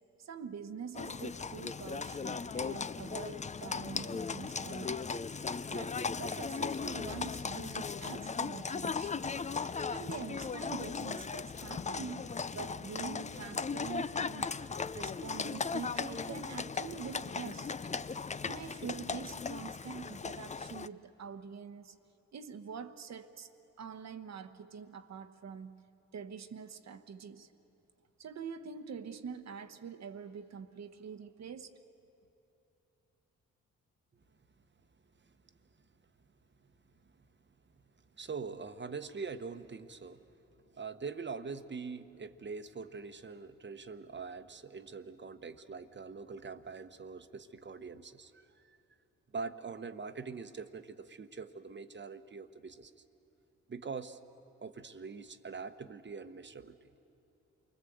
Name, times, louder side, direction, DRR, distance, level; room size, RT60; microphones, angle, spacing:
voice 1, 0.2-5.1 5.7-9.3 9.6-14.7 14.9-17.7 18.2-22.0 22.3-23.5 23.8-25.8 26.1-27.5 28.2-31.7, right 6 dB, 65° right, 10 dB, 1.2 m, -45 dB
Livestock farm animals working animals, 0.9-20.9, left 5 dB, 25° left, 0.5 m, -37 dB
voice 2, 38.2-40.2 40.7-48.8 49.3-52.9 53.7-54.2 54.6-56.8, right 5 dB, 40° right, 10 dB, 1.1 m, -43 dB
28.0 x 20.5 x 7.9 m, 3.0 s
supercardioid pair, 55°, 29 cm